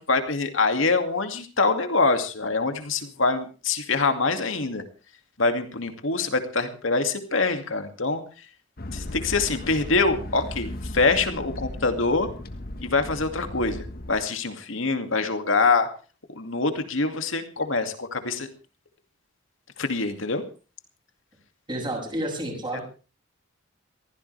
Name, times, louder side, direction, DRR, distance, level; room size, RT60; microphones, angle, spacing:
voice 1, 0.0-4.8 5.4-8.5 8.9-12.3 12.8-15.9 16.3-18.5 19.8-20.4 22.7-22.8, left 3 dB, 70° left, 7 dB, 2.4 m, -25 dB
sound 1, 8.8-14.1, left 1 dB, 45° left, 1.5 m, -36 dB
voice 2, 21.7-22.8, right 1 dB, 25° right, 2 dB, 6.8 m, -30 dB
22.5 x 15.5 x 3.4 m, 0.36 s
head